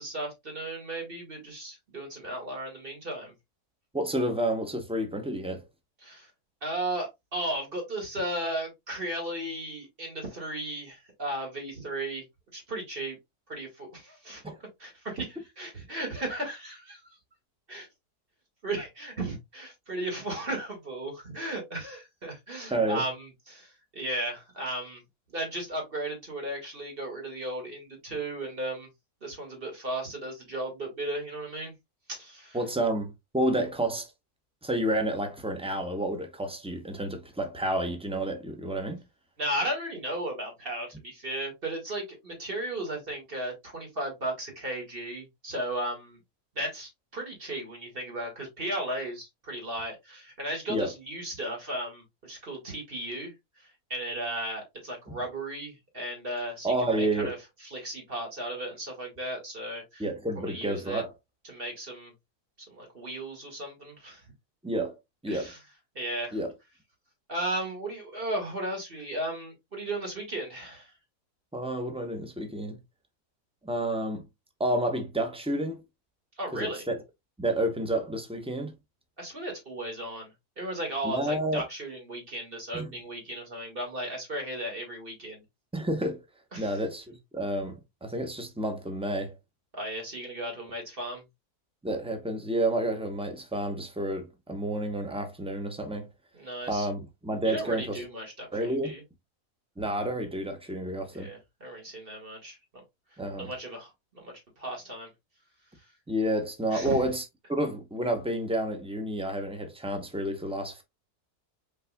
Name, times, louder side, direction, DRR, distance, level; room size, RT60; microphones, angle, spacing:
voice 1, 0.0-3.3 6.0-6.3 6.6-12.2 12.5-13.2 13.5-14.4 14.8-17.2 17.7-17.9 18.6-25.0 25.3-28.9 29.2-31.7 32.1-32.6 39.4-46.2 46.6-53.3 53.9-57.4 57.6-60.0 60.4-61.0 61.5-62.1 62.7-64.2 65.3-65.6 66.0-66.4 67.3-70.9 76.4-76.8 79.2-80.3 80.6-85.4 86.5-86.8 89.7-91.2 96.3-96.9 97.4-99.0 101.1-102.6 103.4-105.1 106.7-107.0, right 1 dB, 35° right, 2.1 m, -35 dB
voice 2, 3.9-5.6 14.4-14.5 22.7-23.0 32.5-34.1 34.6-39.0 50.7-50.9 55.1-55.2 56.6-57.4 60.0-61.1 64.6-65.0 65.2-65.5 66.3-66.5 71.5-72.8 73.6-74.2 74.6-75.8 76.5-77.0 77.4-78.7 81.0-81.6 82.7-82.9 85.7-86.2 86.6-89.4 91.8-96.1 96.7-98.0 98.5-98.9 99.8-101.3 103.2-103.5 106.1-107.2 107.5-110.8, right 1 dB, 5° right, 0.5 m, -30 dB
5.4 x 4.0 x 2.3 m
omnidirectional pair, 1.7 m